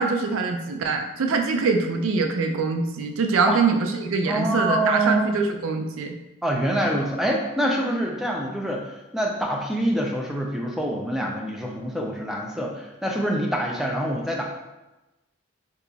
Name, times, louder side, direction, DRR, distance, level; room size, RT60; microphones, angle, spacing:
voice 1, 0.0-6.2, right 4 dB, 85° right, 4 dB, 0.4 m, -24 dB
voice 2, 4.3-5.3 6.4-14.4, right 1 dB, ahead, -1 dB, 0.4 m, -25 dB
2.9 x 2.3 x 3.9 m, 1.0 s
head